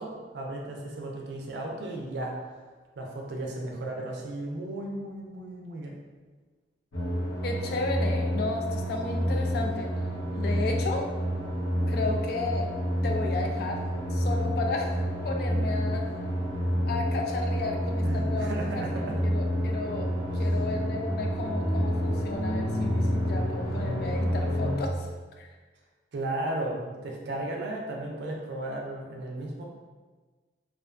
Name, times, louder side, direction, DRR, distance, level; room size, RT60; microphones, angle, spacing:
voice 1, 0.0-2.3 3.0-5.9 18.0-19.3 20.3-20.4 26.1-29.6, right 1 dB, 65° right, 0 dB, 0.4 m, -35 dB
sound 1, 6.9-24.8, equal, 75° left, 0.7 m, -28 dB
voice 2, 7.4-9.9 10.4-11.1 11.9-12.7 13.0-13.8 14.1-14.9 15.2-16.0 16.9-18.5 18.8-20.1 20.3-25.1 25.4-25.5, left 3 dB, 55° left, 2 dB, 0.3 m, -33 dB
2.4 x 2.2 x 2.4 m, 1.3 s
head